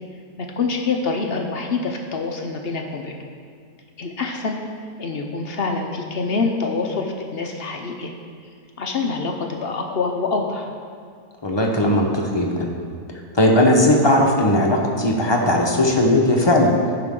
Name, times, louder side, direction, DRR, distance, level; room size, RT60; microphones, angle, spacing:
voice 1, 0.4-3.1 4.0-4.6 5.0-8.1 8.8-10.7, left 4 dB, 60° left, 3 dB, 0.6 m, -25 dB
voice 2, 11.4-12.7 13.3-16.7, left 1 dB, 20° left, 0 dB, 0.7 m, -17 dB
13.0 x 5.7 x 3.7 m, 2.1 s
omnidirectional pair, 1.7 m